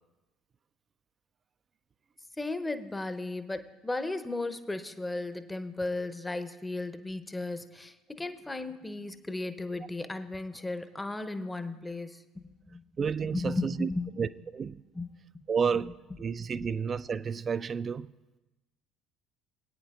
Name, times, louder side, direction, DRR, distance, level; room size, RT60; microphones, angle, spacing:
voice 1, 2.4-12.8 13.2-14.2 14.9-15.1 15.3-15.4 16.6-16.7, left 2 dB, 10° left, 0.7 m, -35 dB
voice 2, 13.0-13.9 14.2-14.8 15.5-15.9 16.2-18.1, right 6 dB, 30° right, 0.3 m, -31 dB
22.0 x 9.1 x 2.4 m
figure-of-eight pair, 60°, 0 cm